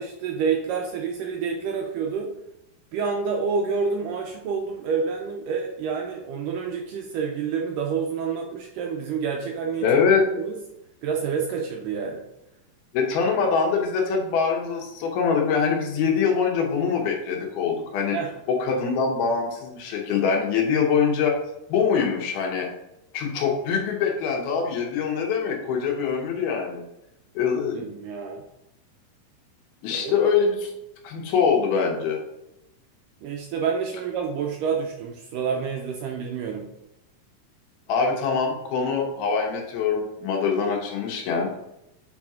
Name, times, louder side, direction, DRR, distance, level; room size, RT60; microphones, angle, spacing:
voice 1, 0.0-2.3 2.9-9.9 10.4-10.6 11.0-12.2 18.1-18.3 27.7-28.4 29.9-30.2 33.2-36.7, right 6 dB, 80° right, 1 dB, 2.0 m, -28 dB
voice 2, 9.8-10.2 12.9-18.2 18.5-21.4 21.7-22.7 23.1-26.8 27.4-27.9 29.8-30.7 31.0-32.2 37.9-41.7, left 6 dB, 80° left, 0 dB, 3.0 m, -24 dB
7.5 x 4.2 x 3.7 m, 0.86 s
omnidirectional pair, 4.4 m